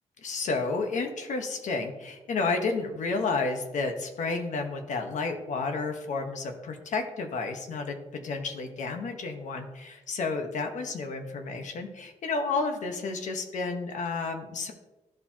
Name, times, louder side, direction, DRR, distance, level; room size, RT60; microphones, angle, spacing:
voice 1, 0.2-14.7, left 3 dB, 80° left, 4 dB, 1.2 m, -31 dB
13.5 x 4.6 x 2.9 m, 1.1 s
cardioid pair, 90°, 13 cm